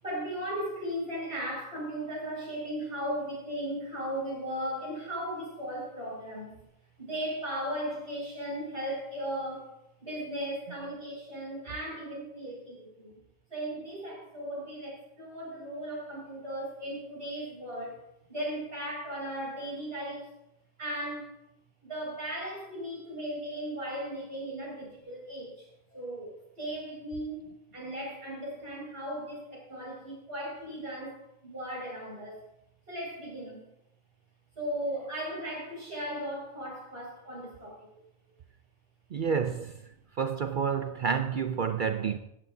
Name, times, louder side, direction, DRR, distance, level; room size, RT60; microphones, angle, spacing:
voice 1, 0.0-6.5 7.0-9.7 10.0-13.1 13.5-18.0 18.3-20.2 20.8-21.3 21.9-25.5 25.9-27.4 27.7-32.4 32.9-33.6 34.6-37.9, right 1 dB, 45° right, 6.0 m, -36 dB
voice 2, 39.1-39.8 40.2-42.2, right 6 dB, 75° right, 0.4 m, -29 dB
16.0 x 14.0 x 2.7 m
omnidirectional pair, 1.4 m